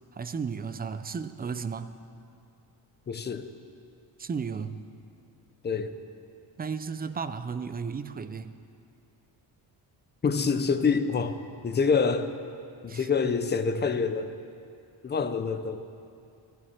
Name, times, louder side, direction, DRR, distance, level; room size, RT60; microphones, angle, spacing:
voice 1, 0.1-2.0 4.2-4.8 6.6-8.5 12.9-13.3, right 5 dB, 20° right, 11 dB, 0.4 m, -34 dB
voice 2, 3.1-3.5 5.6-6.0 10.2-12.3 12.8-14.3 15.0-15.8, left 5 dB, 25° left, 9 dB, 0.6 m, -26 dB
16.5 x 15.0 x 4.4 m, 2.5 s
cardioid pair, 145°, 44 cm